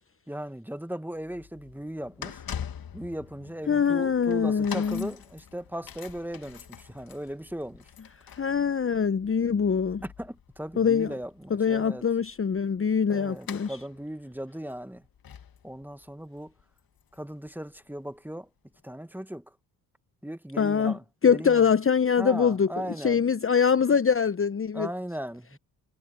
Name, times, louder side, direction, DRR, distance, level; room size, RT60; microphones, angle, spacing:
voice 1, 0.3-2.4 2.9-7.9 10.0-12.0 13.1-15.0 15.6-16.5 17.1-18.5 18.8-19.5 20.2-21.6 22.2-23.2 24.7-25.6, equal, 5° right, 2.1 m, -37 dB
sound 1, 1.1-18.1 18.7-18.8, left 8 dB, 50° left, 2.2 m, -45 dB
voice 2, 3.7-5.1 8.3-10.0 10.8-11.1 11.5-13.8 20.6-21.0 21.2-22.7 23.0-24.9, left 6 dB, 30° left, 1.0 m, -23 dB
hypercardioid pair, 40°, 46 cm